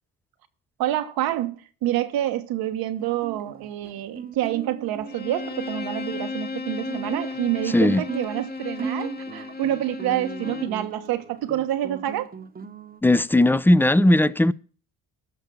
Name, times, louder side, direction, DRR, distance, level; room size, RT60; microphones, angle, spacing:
voice 1, 0.8-12.3, right 13 dB, 85° right, 1.2 m, -27 dB
Guitar, 3.0-13.0, right 5 dB, 25° right, 0.9 m, -38 dB
Bowed string instrument, 5.0-10.8, left 4 dB, 30° left, 1.1 m, -34 dB
voice 2, 7.7-8.0 13.0-14.5, left 1 dB, 5° left, 0.4 m, -18 dB
13.5 x 5.7 x 7.2 m
cardioid pair, 80°, 35 cm